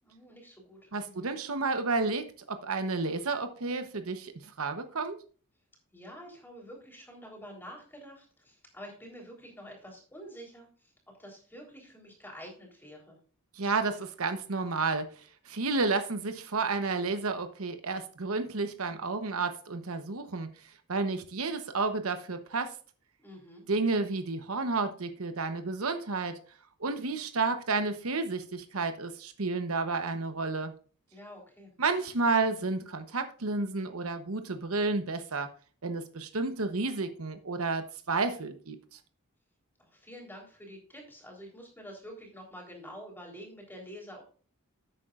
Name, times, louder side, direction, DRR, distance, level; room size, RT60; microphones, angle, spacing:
voice 1, 0.0-1.3 5.9-13.2 23.2-23.7 31.1-31.7 39.8-44.2, equal, 10° left, 3.8 m, -48 dB
voice 2, 0.9-5.2 13.6-15.0 15.5-20.5 20.9-22.7 23.7-26.4 26.8-30.7 31.8-35.5 35.8-39.0, right 3 dB, 75° right, 1.0 m, -31 dB
12.0 x 8.8 x 2.5 m
head